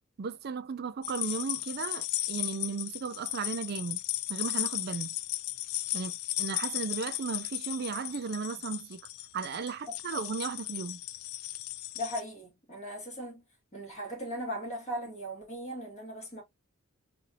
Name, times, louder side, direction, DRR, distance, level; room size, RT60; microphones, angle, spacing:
voice 1, 0.2-4.0 4.3-5.1 5.9-6.1 6.4-9.0 9.3-11.0, right 5 dB, 45° right, 0.4 m, -35 dB
sound 1, 1.0-12.2, left 15 dB, 70° left, 0.3 m, -36 dB
voice 2, 11.9-13.4 13.7-16.4, equal, 30° left, 2.1 m, -38 dB
4.0 x 2.7 x 2.6 m
head